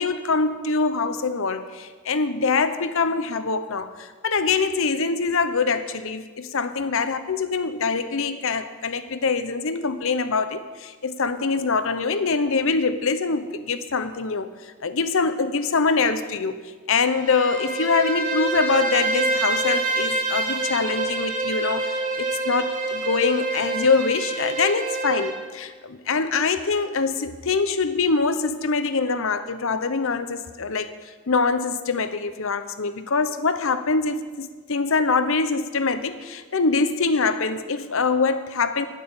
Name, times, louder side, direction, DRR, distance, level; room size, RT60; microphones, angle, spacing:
voice 1, 0.0-14.5 14.8-16.6 16.9-30.9 31.3-38.9, left 4 dB, 65° left, 11 dB, 0.8 m, -24 dB
Bowed string instrument, 17.1-25.4, right 2 dB, 35° right, 1.4 m, -26 dB
10.0 x 9.5 x 7.1 m, 1.4 s
head